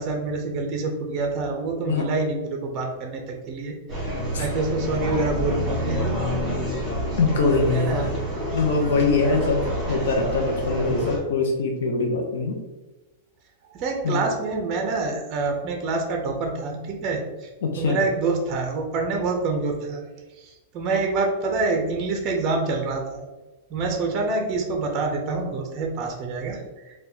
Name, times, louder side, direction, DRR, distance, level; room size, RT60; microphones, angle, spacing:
voice 1, 0.0-3.2 3.5-3.8 4.4-6.0 7.7-8.1 13.7-17.5 17.8-20.0 20.7-23.2 23.7-26.6, right 3 dB, 30° right, 2 dB, 0.5 m, -26 dB
sound 1, 3.9-11.2, equal, 5° right, 1.4 m, -28 dB
voice 2, 7.2-8.2 8.5-12.6 14.0-14.2 17.6-18.0, left 3 dB, 75° left, 2 dB, 0.5 m, -23 dB
4.3 x 2.2 x 2.7 m, 1.1 s
supercardioid pair, 170°, 0 cm